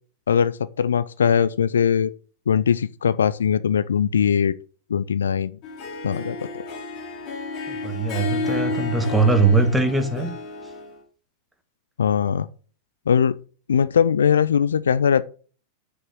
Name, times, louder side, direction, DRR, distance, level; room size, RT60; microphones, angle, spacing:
voice 1, 0.3-2.1 2.5-4.5 4.9-5.6 6.0-6.6 12.0-12.5 13.1-13.4 13.7-15.2, left 7 dB, 70° left, 0.4 m, -20 dB
Harp, 5.6-11.0, left 3 dB, 40° left, 2.7 m, -31 dB
voice 2, 7.7-10.3, right 3 dB, 5° right, 1.5 m, -21 dB
6.3 x 5.5 x 6.6 m
figure-of-eight pair, 90°, 0 cm